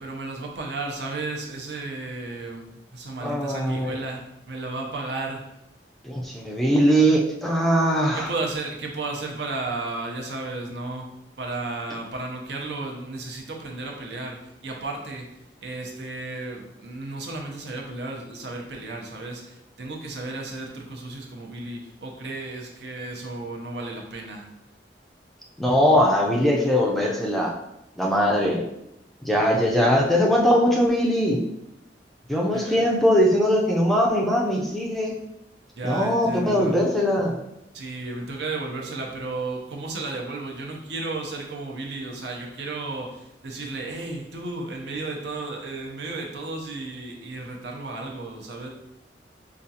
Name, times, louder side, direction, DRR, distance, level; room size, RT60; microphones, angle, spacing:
voice 1, 0.0-5.4 8.1-11.1 11.4-15.3 15.6-24.5 32.5-32.9 35.8-36.8 37.7-48.7, right 2 dB, 70° right, 1 dB, 0.7 m, -33 dB
voice 2, 3.2-4.0 6.0-8.3 25.6-27.5 28.0-28.6 29.2-31.4 32.3-35.1 35.8-37.4, equal, ahead, -2 dB, 0.4 m, -21 dB
4.9 x 2.4 x 2.8 m, 0.87 s
head